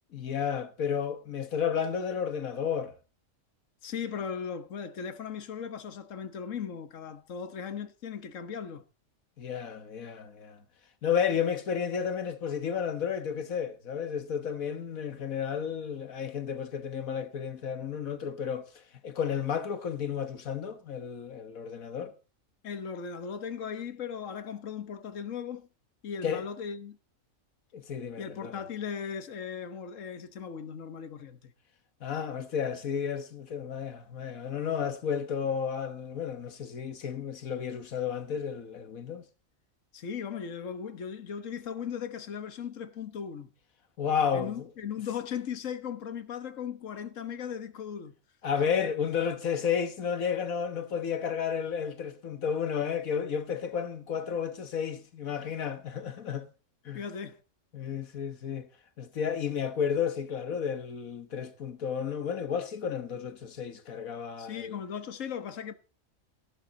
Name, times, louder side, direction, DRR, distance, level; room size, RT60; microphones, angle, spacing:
voice 1, 0.1-2.9 9.4-10.6 11.0-22.1 26.2-26.4 27.7-28.6 32.0-39.2 44.0-44.7 48.4-56.5 56.9-57.0 57.7-58.7 59.0-64.8, left 7 dB, 85° left, 1.7 m, -32 dB
voice 2, 3.8-8.8 22.6-25.7 26.0-27.0 28.2-31.5 39.9-43.5 44.3-48.1 56.9-57.4 64.4-65.7, left 7 dB, 65° left, 1.7 m, -37 dB
16.5 x 12.0 x 4.0 m
omnidirectional pair, 1.4 m